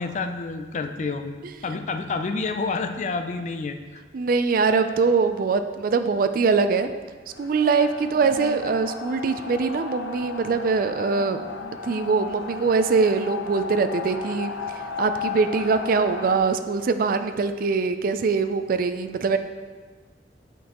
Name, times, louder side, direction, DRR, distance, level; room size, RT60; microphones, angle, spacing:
voice 1, 0.0-1.3 1.6-4.0, left 4 dB, 40° left, 7 dB, 0.4 m, -29 dB
voice 2, 4.1-6.9 7.4-11.4 11.8-14.5 15.0-19.4, right 4 dB, 50° right, 9 dB, 0.4 m, -22 dB
sound 1, 7.3-16.4, left 5 dB, 80° left, 0.6 m, -35 dB
8.6 x 5.3 x 3.0 m, 1.4 s
head